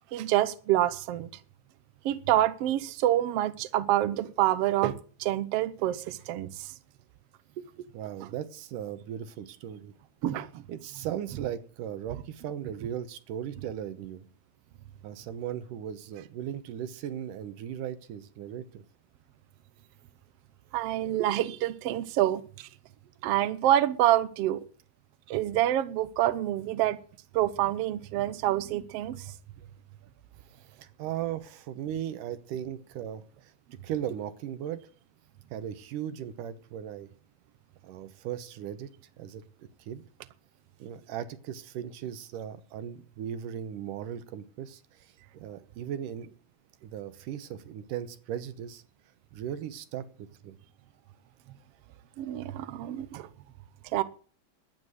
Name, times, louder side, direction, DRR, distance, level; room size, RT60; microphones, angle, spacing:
voice 1, 0.1-1.3 2.0-6.7 10.2-10.6 20.7-22.7 23.2-24.6 25.3-27.0 27.3-29.3 52.2-53.3 53.9-54.0, right 13 dB, 90° right, 1.3 m, -27 dB
voice 2, 7.9-9.9 10.7-14.2 15.0-18.8 30.5-33.5 33.8-34.9 35.5-37.1 37.8-38.9 39.2-40.0 40.8-46.4 46.8-48.8 49.3-50.6, right 10 dB, 70° right, 2.4 m, -37 dB
12.0 x 9.4 x 8.0 m
omnidirectional pair, 4.2 m